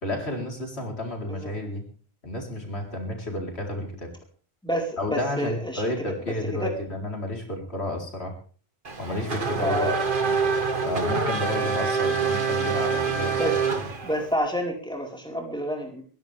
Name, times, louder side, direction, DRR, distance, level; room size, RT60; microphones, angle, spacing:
voice 1, 0.0-1.8 2.2-4.1 5.0-8.3 9.0-9.9 10.2-10.4 10.8-13.6, left 1 dB, 90° left, 1 dB, 4.5 m, -31 dB
voice 2, 4.6-5.8 6.6-6.7 9.6-10.0 13.4-13.6 14.0-16.0, equal, 5° left, 0 dB, 4.6 m, -28 dB
Race car auto racing / Accelerating revving vroom, 8.8-14.3, right 5 dB, 55° right, 1.8 m, -26 dB
22.0 x 16.0 x 3.5 m, 0.41 s
omnidirectional pair, 1.1 m